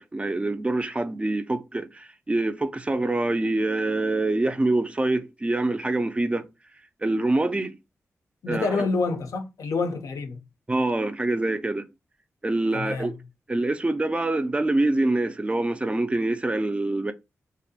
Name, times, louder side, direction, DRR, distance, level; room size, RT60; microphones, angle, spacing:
voice 1, 0.0-6.5 7.0-7.8 8.5-8.9 10.7-11.9 12.4-13.2 13.5-17.1, right 2 dB, 20° right, 0.3 m, -25 dB
voice 2, 8.4-10.4 12.7-13.1, left 4 dB, 75° left, 0.5 m, -27 dB
2.6 x 2.1 x 2.6 m
cardioid pair, 60°, 6 cm